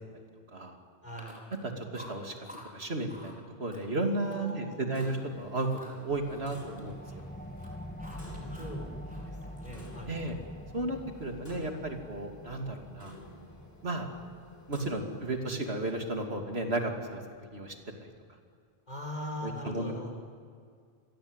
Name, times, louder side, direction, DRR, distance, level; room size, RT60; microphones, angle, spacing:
voice 1, 1.0-1.4 4.2-4.9 8.6-8.9 9.2-10.1 18.9-20.1, left 1 dB, 45° left, 1 dB, 5.7 m, -41 dB
Chewing mastication, 1.1-1.6 1.9-2.7 3.1-3.4 3.7-4.5 4.9-5.2 5.6-7.2 7.5-8.8 9.1-10.4, left 1 dB, 10° right, 4.8 m, -52 dB
voice 2, 1.6-2.5 2.7-7.2 10.1-10.4 10.7-13.1 13.8-14.1 14.7-17.2 17.5-17.7 18.0-18.1 19.4-20.1, right 2 dB, 85° right, 3 dB, 3.2 m, -34 dB
Clock, 4.9-16.3, left 1 dB, 70° left, 5.3 m, -52 dB
sound 1, 6.1-17.2, equal, 10° left, 1.9 m, -46 dB
29.0 x 22.5 x 8.3 m, 2.1 s
omnidirectional pair, 1.0 m